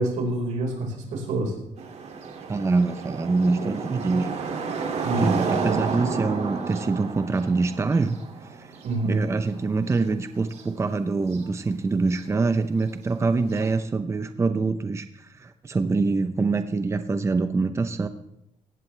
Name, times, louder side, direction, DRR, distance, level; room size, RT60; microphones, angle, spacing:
voice 1, 0.0-1.5 5.0-5.4 8.8-9.2, right 2 dB, 85° right, 0 dB, 4.7 m, -27 dB
sound 1, 1.8-10.0 10.3-10.8 11.3-11.5 12.1-12.2 13.5-13.7, right 5 dB, 60° right, 2.5 m, -31 dB
voice 2, 2.5-4.3 5.2-8.2 8.5-8.7 9.0-18.1, right 3 dB, 20° right, 10 dB, 0.7 m, -25 dB
18.5 x 15.5 x 3.3 m, 0.83 s
cardioid pair, 120°, 12 cm